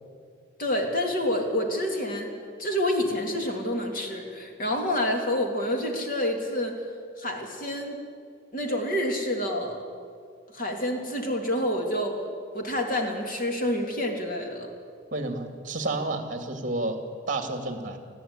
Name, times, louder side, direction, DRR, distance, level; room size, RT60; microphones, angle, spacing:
voice 1, 0.6-2.3 2.6-6.8 7.2-8.0 8.5-9.8 10.5-12.2 12.5-14.7, left 1 dB, 45° left, 2 dB, 3.2 m, -28 dB
voice 2, 15.1-17.0 17.3-18.0, right 2 dB, 45° right, 6 dB, 2.5 m, -30 dB
20.0 x 14.5 x 9.9 m, 2.2 s
head